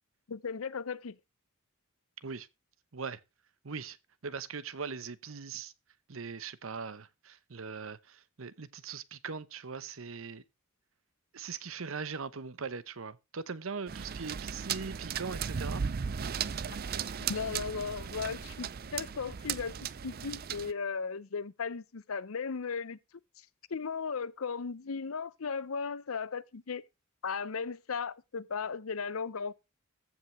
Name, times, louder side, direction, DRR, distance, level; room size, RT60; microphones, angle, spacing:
voice 1, 0.3-1.2 17.3-23.0 23.7-26.8 27.2-29.5, left 5 dB, 75° left, 0.7 m, -36 dB
voice 2, 3.6-4.0 4.2-5.7 6.1-10.4 11.3-15.8 16.5-16.7, right 5 dB, 70° right, 0.9 m, -40 dB
sound 1, 13.9-20.7, right 7 dB, 45° right, 0.5 m, -36 dB
15.0 x 5.8 x 3.1 m
head